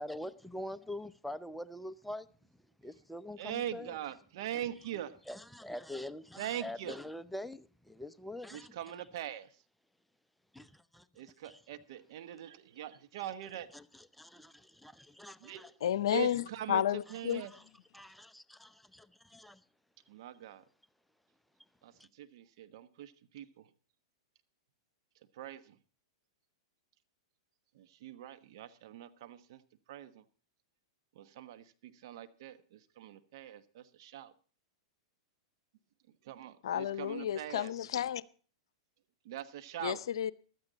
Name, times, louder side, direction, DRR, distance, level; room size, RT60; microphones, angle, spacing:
voice 1, 0.0-2.3 2.8-3.9 5.3-8.7 10.5-11.1 11.4-11.6 13.7-13.8 14.1-15.7 17.4-17.6 17.9-19.6 22.0-22.1, left 1 dB, ahead, 0.7 m, -44 dB
voice 2, 3.4-5.2 6.4-7.0 8.5-9.6 11.1-13.7 15.4-15.7 16.1-17.5 20.1-20.6 21.8-23.7 25.3-25.8 27.7-30.2 31.1-34.3 36.2-37.7 39.2-40.0, right 11 dB, 60° right, 1.3 m, -43 dB
voice 3, 15.8-17.4 36.6-38.2 39.8-40.3, left 10 dB, 70° left, 0.7 m, -32 dB
15.5 x 13.0 x 4.0 m
hypercardioid pair, 110°, 3 cm